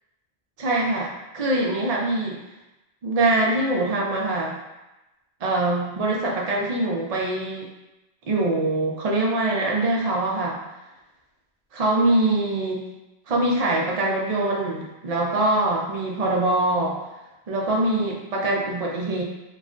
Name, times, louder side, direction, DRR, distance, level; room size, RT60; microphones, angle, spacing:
voice 1, 0.6-2.4 3.0-4.6 5.4-7.7 8.3-10.6 11.7-12.8 13.3-17.0 17.5-19.2, right 2 dB, 45° right, -2 dB, 0.5 m, -23 dB
2.4 x 2.2 x 3.7 m, 0.99 s
omnidirectional pair, 1.1 m